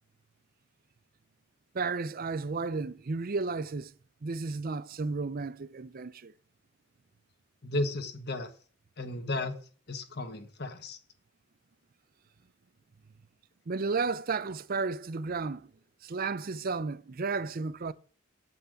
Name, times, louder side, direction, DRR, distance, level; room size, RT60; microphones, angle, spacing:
voice 1, 1.7-3.9 4.2-6.3 13.7-15.7 16.0-17.9, right 4 dB, 45° right, 0.5 m, -33 dB
voice 2, 7.6-8.5 9.0-9.6 9.9-11.0, left 2 dB, 50° left, 1.3 m, -34 dB
8.1 x 5.6 x 7.6 m
head